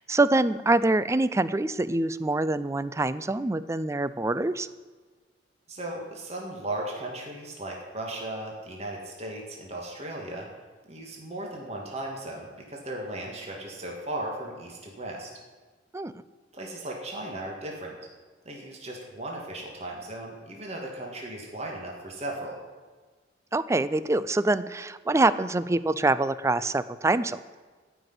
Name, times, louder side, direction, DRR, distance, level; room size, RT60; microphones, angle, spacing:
voice 1, 0.0-4.7 15.9-16.1 23.5-27.6, right 2 dB, 15° right, 15 dB, 0.4 m, -25 dB
voice 2, 5.7-10.5 10.9-15.3 16.5-18.0 18.5-22.6, right 1 dB, 35° right, -1 dB, 2.1 m, -36 dB
14.0 x 6.1 x 9.5 m, 1.4 s
head